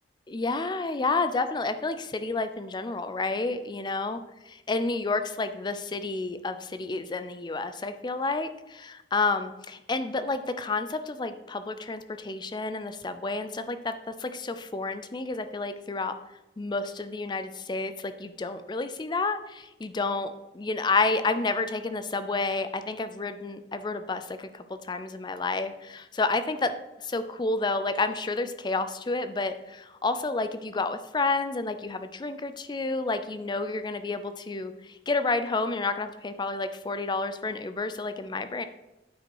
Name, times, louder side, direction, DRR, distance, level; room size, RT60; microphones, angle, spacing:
voice 1, 0.3-4.2 4.5-16.1 16.6-26.7 27.0-34.7 35.1-38.6, left 3 dB, 25° left, 11 dB, 0.4 m, -30 dB
9.0 x 5.1 x 4.7 m, 0.97 s
head